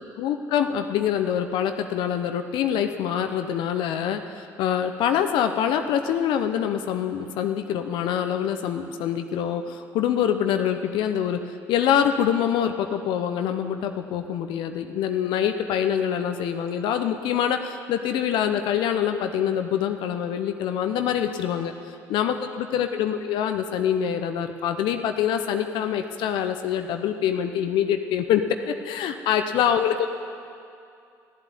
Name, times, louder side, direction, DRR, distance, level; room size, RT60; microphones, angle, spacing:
voice 1, 0.0-30.1, left 9 dB, 70° left, 7 dB, 0.8 m, -25 dB
13.5 x 8.2 x 9.3 m, 2.5 s
hypercardioid pair, 60°, 8 cm